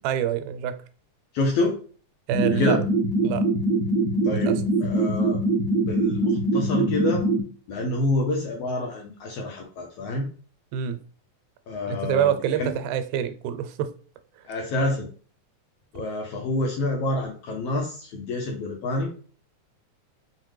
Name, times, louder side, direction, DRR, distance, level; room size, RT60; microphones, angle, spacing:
voice 1, 0.0-0.8 2.3-2.8 3.2-3.4 4.3-4.6 10.7-11.0 11.9-13.9, right 10 dB, 90° right, 2.0 m, -26 dB
voice 2, 1.3-1.8 2.4-2.8 4.2-5.4 5.8-7.2 7.7-10.3 11.7-12.3 12.6-12.7 14.4-15.1 15.9-19.1, left 2 dB, 75° left, 1.5 m, -27 dB
sound 1, 2.3-7.4, right 2 dB, 70° right, 1.8 m, -23 dB
5.5 x 2.1 x 3.1 m
omnidirectional pair, 3.4 m